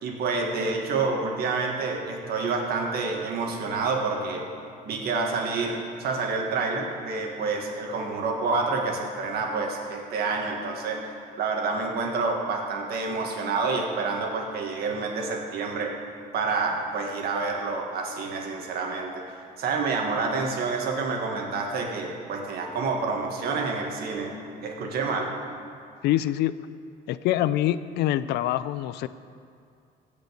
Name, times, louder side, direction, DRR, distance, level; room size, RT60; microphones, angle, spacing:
voice 1, 0.0-4.5 4.9-15.9 16.3-19.2 19.6-24.3 24.6-25.3, right 4 dB, 70° right, 1 dB, 1.9 m, -28 dB
voice 2, 26.0-26.5 27.1-29.1, left 13 dB, 80° left, 15 dB, 0.4 m, -25 dB
16.0 x 5.4 x 6.6 m, 2.4 s
cardioid pair, 110°, 17 cm